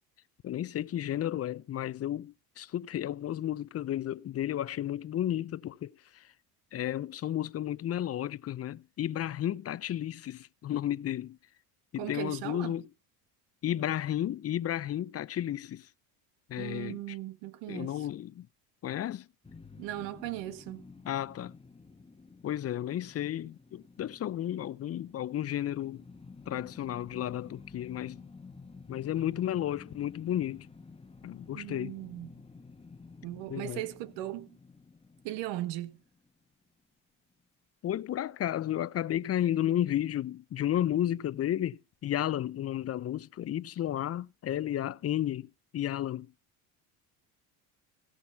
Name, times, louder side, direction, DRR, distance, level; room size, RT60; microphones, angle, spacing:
voice 1, 0.4-6.3 6.7-11.4 11.9-12.8 13.6-15.9 16.5-17.0 17.7-18.5 18.8-19.3 21.1-21.5 22.4-26.1 26.5-28.2 28.9-30.7 31.2-31.9 33.5-33.8 37.8-46.3, left 11 dB, 35° left, 0.6 m, -33 dB
voice 2, 12.0-12.8 16.6-18.1 19.8-20.9 31.5-32.4 33.2-34.6 35.2-36.0, right 15 dB, 70° right, 1.7 m, -38 dB
sound 1, 19.4-36.6, left 4 dB, 15° left, 1.3 m, -52 dB
16.5 x 6.4 x 5.7 m
supercardioid pair, 85°, 44 cm